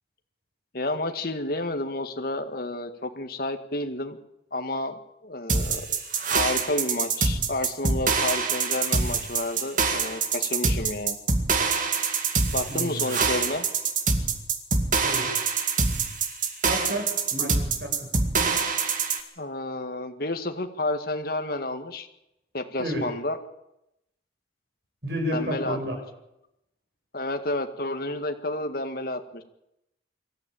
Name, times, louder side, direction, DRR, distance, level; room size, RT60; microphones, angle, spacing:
voice 1, 0.7-4.2 4.5-4.9 5.2-6.0 6.3-11.2 12.5-13.7 19.4-22.1 22.5-23.4 25.3-25.8 27.1-29.4, left 2 dB, 55° left, 6 dB, 1.9 m, -30 dB
sound 1, 5.5-19.2, right 4 dB, 45° right, 2.1 m, -25 dB
voice 2, 12.7-13.2 15.0-15.3 16.6-18.1 18.3-18.6 22.8-23.1 25.0-26.0, equal, 65° right, 2 dB, 7.2 m, -31 dB
24.0 x 13.5 x 8.9 m, 0.86 s
head